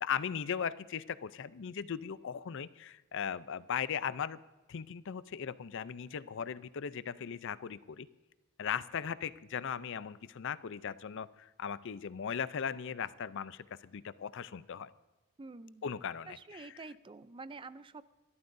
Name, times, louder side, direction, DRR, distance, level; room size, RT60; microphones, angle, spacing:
voice 1, 0.0-4.4 4.7-8.1 8.6-14.9 15.8-16.7, left 7 dB, 60° left, 16 dB, 0.5 m, -38 dB
voice 2, 15.4-15.8 16.3-18.0, right 3 dB, 25° right, 15 dB, 0.4 m, -48 dB
27.0 x 13.0 x 2.6 m, 1.2 s
head